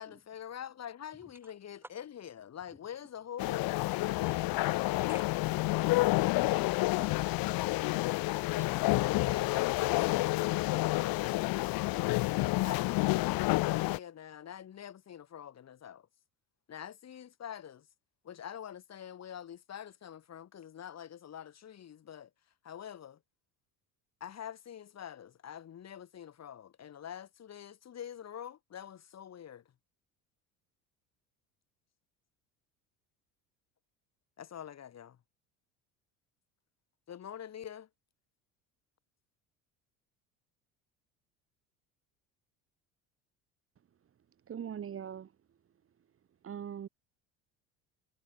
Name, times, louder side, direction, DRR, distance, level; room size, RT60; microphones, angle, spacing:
voice 1, 0.0-5.1 8.4-11.6 12.5-16.1 16.7-17.9 18.2-22.3 22.6-23.2 24.2-29.6 34.4-35.2 37.1-37.9, left 9 dB, 40° left, 3.9 m, -45 dB
voice 2, 1.2-1.5 4.2-4.7 5.1-8.8 10.1-10.2, right 1 dB, 5° right, 7.1 m, -56 dB
sound 1, 3.4-14.0, left 21 dB, 65° left, 1.4 m, -29 dB
voice 3, 44.5-45.3 46.4-46.9, right 8 dB, 35° right, 1.8 m, -40 dB
supercardioid pair, 90°, 38 cm